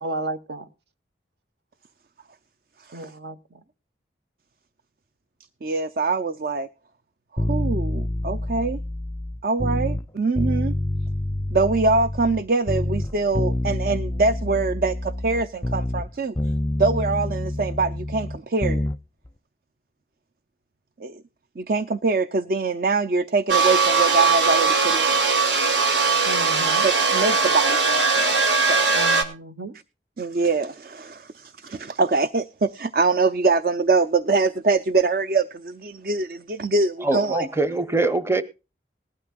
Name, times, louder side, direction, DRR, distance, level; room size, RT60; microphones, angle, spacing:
voice 1, 0.0-0.7 2.9-3.4 26.2-26.8 28.9-29.7, right 2 dB, 75° right, 1.2 m, -33 dB
voice 2, 5.6-6.7 7.3-8.8 9.4-10.7 11.5-16.3 16.8-18.8 21.0-21.2 21.6-25.1 26.8-28.3 28.6-28.9 30.2-37.5, right 3 dB, 50° right, 0.5 m, -24 dB
sound 1, 7.4-10.0 10.4-12.4 12.7-16.1 16.4-19.0 19.3-19.4, left 1 dB, 15° left, 0.5 m, -27 dB
sound 2, 23.5-29.2, right 4 dB, 90° right, 2.3 m, -20 dB
voice 3, 37.0-38.4, right 2 dB, 15° right, 0.8 m, -23 dB
19.0 x 12.0 x 2.4 m
head